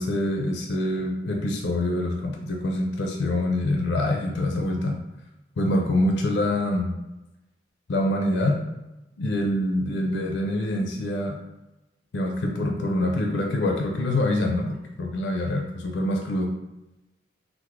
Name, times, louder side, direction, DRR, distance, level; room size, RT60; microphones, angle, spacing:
voice 1, 0.0-4.9 5.6-6.9 7.9-8.6 9.2-11.4 12.1-16.5, left 1 dB, 70° left, 0 dB, 0.4 m, -25 dB
3.1 x 2.1 x 3.4 m, 0.97 s
head